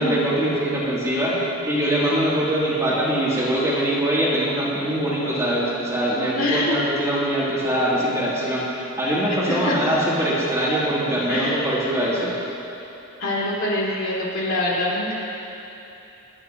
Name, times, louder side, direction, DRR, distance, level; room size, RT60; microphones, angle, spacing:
voice 1, 0.0-12.3, right 1 dB, 15° right, -8 dB, 3.1 m, -23 dB
voice 2, 6.3-6.8 9.4-9.8 11.3-11.9 13.2-15.1, left 1 dB, 65° left, -6 dB, 3.2 m, -25 dB
28.0 x 11.0 x 3.1 m, 3.0 s
head